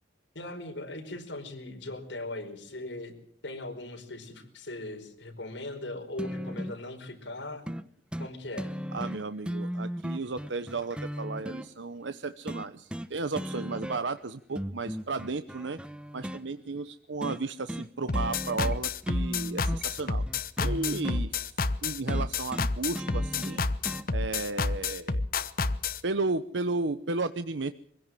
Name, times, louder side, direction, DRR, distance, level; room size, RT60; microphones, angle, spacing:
voice 1, 0.3-3.1 3.4-7.6 8.2-8.8, left 2 dB, 75° left, 4 dB, 4.9 m, -39 dB
sound 1, 6.2-6.8 7.7-7.8 8.1-8.3 8.6-11.7 12.5-13.1 13.4-14.2 14.6-16.4 17.2-17.4 17.7-17.9 18.1-18.8 19.0-21.2 22.1-24.1 25.1-25.2, equal, 5° right, 0.9 m, -36 dB
voice 2, 8.9-15.8 16.1-20.2 20.6-21.5 21.8-23.6 24.1-25.2 26.0-27.7, right 3 dB, 80° right, 11 dB, 0.9 m, -34 dB
sound 2, 18.1-26.0, left 3 dB, 50° left, 1.1 m, -29 dB
24.5 x 16.5 x 7.7 m, 0.64 s
head